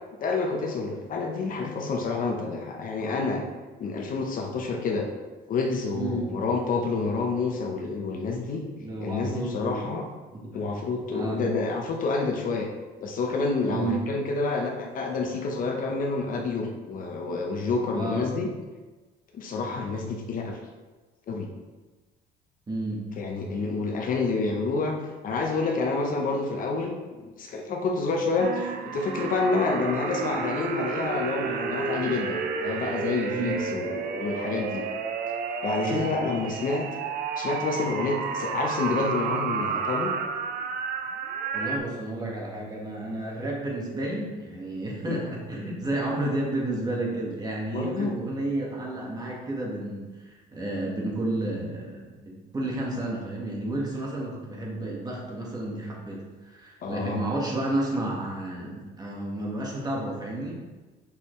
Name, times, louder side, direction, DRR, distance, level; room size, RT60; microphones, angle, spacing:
voice 1, 0.2-3.4 3.8-5.1 5.5-8.6 9.0-10.0 10.5-12.7 13.0-18.5 19.3-20.6 21.3-21.5 23.2-24.9 25.2-26.9 27.2-34.8 35.6-36.9 37.4-40.1 45.1-45.2 47.6-48.1 56.8-57.2, left 3 dB, 55° left, 1 dB, 1.0 m, -28 dB
voice 2, 5.9-6.3 8.8-9.9 10.3-10.7 11.1-11.4 13.7-14.0 17.9-18.3 22.7-23.1 33.3-33.6 35.7-36.1 41.5-52.0 52.2-60.5, right 1 dB, 25° right, -3 dB, 1.9 m, -31 dB
sound 1, 28.4-41.8, right 5 dB, 65° right, 0.7 m, -31 dB
6.7 x 5.5 x 3.3 m, 1.3 s
cardioid pair, 110°, 17 cm